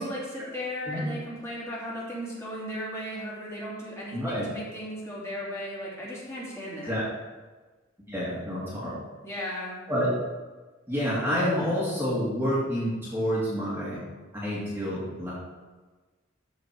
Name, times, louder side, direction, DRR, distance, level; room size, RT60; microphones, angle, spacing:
voice 1, 0.0-6.9 9.2-9.9, equal, 15° left, -7 dB, 2.9 m, -36 dB
voice 2, 4.1-4.5 6.9-7.0 8.1-9.0 9.9-10.1 10.9-14.0 14.3-15.3, equal, 10° right, -8 dB, 2.2 m, -28 dB
13.5 x 4.7 x 4.7 m, 1.3 s
head